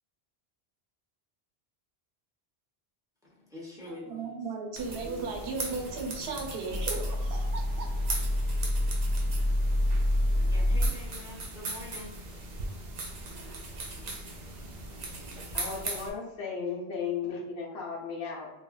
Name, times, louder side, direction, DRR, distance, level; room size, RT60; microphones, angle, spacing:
voice 1, 3.2-4.4 4.9-5.6 10.5-12.2, left 2 dB, 5° right, -6 dB, 0.5 m, -46 dB
voice 2, 4.1-8.2 15.1-15.3, right 4 dB, 75° right, 2 dB, 0.8 m, -36 dB
sound 1, 4.7-16.1, right 2 dB, 50° right, 0.5 m, -39 dB
sound 2, 5.8-10.9, left 1 dB, 30° left, 0.7 m, -28 dB
voice 3, 15.5-18.5, left 6 dB, 75° left, -4 dB, 0.8 m, -35 dB
3.2 x 2.1 x 2.3 m, 1.0 s
omnidirectional pair, 1.1 m